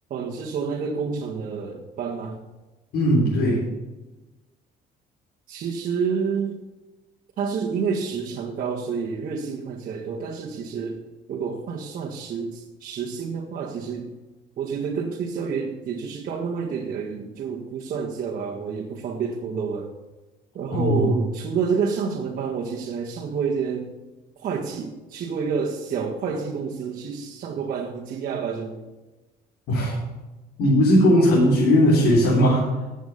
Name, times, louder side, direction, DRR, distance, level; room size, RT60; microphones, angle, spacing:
voice 1, 0.1-2.4 5.5-6.6 7.4-11.0 11.3-14.1 14.6-19.9 20.5-23.9 24.4-28.9, right 6 dB, 55° right, -3 dB, 1.6 m, -29 dB
voice 2, 2.9-3.6 20.7-21.1 29.7-30.0 30.6-32.7, equal, 75° left, -6 dB, 4.1 m, -18 dB
10.5 x 8.1 x 7.0 m, 1.1 s
cardioid pair, 110°, 17 cm